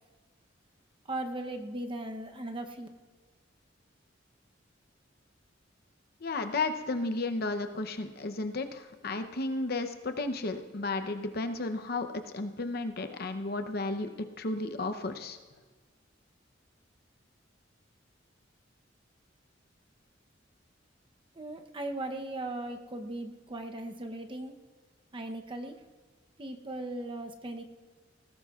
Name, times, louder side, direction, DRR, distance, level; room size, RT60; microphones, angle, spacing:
voice 1, 1.1-2.9 21.3-24.6 25.1-25.8 26.4-27.6, right 1 dB, 25° right, 5 dB, 0.8 m, -38 dB
voice 2, 6.2-15.4, left 2 dB, 55° left, 8 dB, 0.8 m, -33 dB
19.5 x 16.5 x 2.4 m, 1.4 s
head